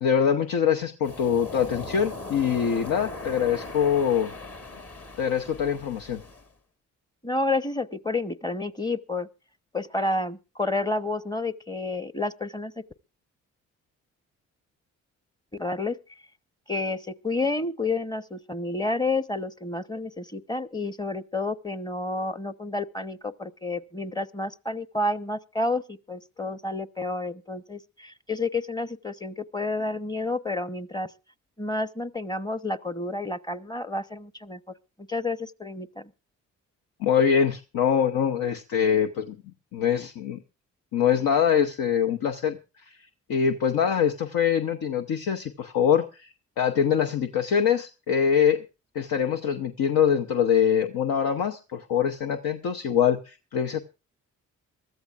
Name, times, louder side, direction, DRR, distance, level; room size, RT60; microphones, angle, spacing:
voice 1, 0.0-4.3 5.2-6.2 37.0-39.4 39.7-40.4 40.9-42.6 42.9-43.0 43.3-46.3 46.6-48.6 48.9-53.8, left 8 dB, 65° left, 1.0 m, -24 dB
Waves surf, 1.0-6.5, left 3 dB, 40° left, 2.1 m, -39 dB
voice 2, 7.2-9.3 9.7-12.7 15.6-16.0 16.7-31.1 31.6-34.6 35.1-36.1, left 2 dB, 10° left, 0.9 m, -30 dB
23.5 x 13.5 x 2.5 m
hypercardioid pair, 40°, 38 cm